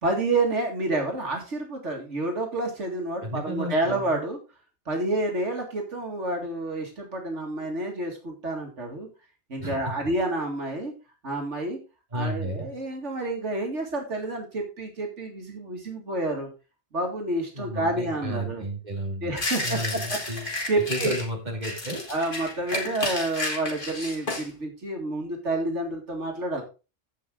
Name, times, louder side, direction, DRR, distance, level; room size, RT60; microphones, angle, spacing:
voice 1, 0.0-4.4 4.9-9.1 9.5-10.9 11.2-11.8 12.1-16.5 16.9-18.6 19.2-19.8 20.7-21.2 22.1-26.6, right 2 dB, 90° right, 2 dB, 2.6 m, -29 dB
voice 2, 3.2-4.2 9.6-9.9 12.1-12.7 17.5-20.5 20.9-22.0, equal, 40° right, 0 dB, 3.1 m, -33 dB
sound 1, 19.4-21.3 21.6-24.5, left 2 dB, 45° left, 2.7 m, -32 dB
15.5 x 5.4 x 3.8 m, 0.30 s
omnidirectional pair, 1.2 m